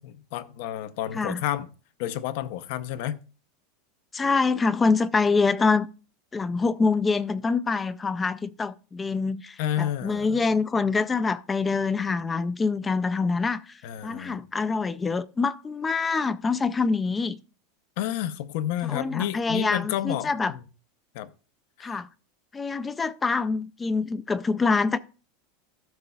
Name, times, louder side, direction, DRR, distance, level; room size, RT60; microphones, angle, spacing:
voice 1, 0.0-1.7 2.0-3.2 9.6-10.4 13.8-14.4 18.0-20.6 21.1-21.3 21.8-22.0, left 12 dB, 55° left, 0.7 m, -30 dB
voice 2, 4.1-5.9 6.3-17.4 18.8-20.5 21.8-22.1 22.5-25.0, left 4 dB, 10° left, 0.3 m, -25 dB
13.5 x 6.5 x 2.3 m
supercardioid pair, 165°, 0 cm